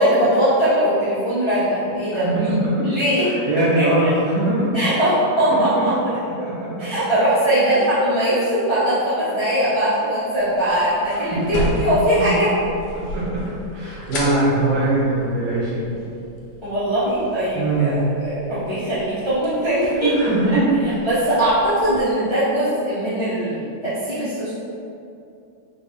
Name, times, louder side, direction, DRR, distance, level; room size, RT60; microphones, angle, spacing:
voice 1, 0.0-3.3 3.7-3.9 4.7-5.9 6.8-12.5 16.6-20.1 21.0-24.5, right 1 dB, 25° left, -13 dB, 0.6 m, -20 dB
voice 2, 2.1-2.9 3.2-4.8 5.5-6.1 6.4-6.9 11.2-11.6 12.2-12.5 12.9-13.4 13.7-15.9 17.6-18.0 20.0-20.7, right 2 dB, 85° right, -8 dB, 2.0 m, -22 dB
sound 1, 10.4-22.0, left 1 dB, 70° left, 1.2 m, -34 dB
4.4 x 2.2 x 3.4 m, 2.6 s
omnidirectional pair, 2.1 m